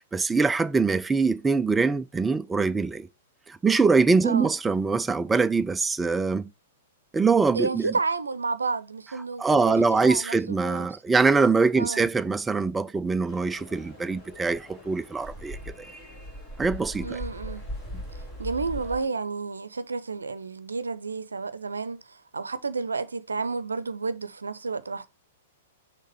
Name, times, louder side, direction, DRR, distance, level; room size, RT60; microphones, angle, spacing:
voice 1, 0.0-3.1 3.5-6.5 7.1-7.9 9.4-15.6 16.6-17.2 17.9-18.0, right 4 dB, 10° right, 0.4 m, -23 dB
voice 2, 7.5-10.9 11.8-12.1 17.0-17.6 18.4-25.1, right 4 dB, 75° right, 0.6 m, -31 dB
sound 1, 13.3-19.1, equal, 25° left, 3.1 m, -39 dB
6.5 x 3.7 x 5.3 m
figure-of-eight pair, 105°, 0 cm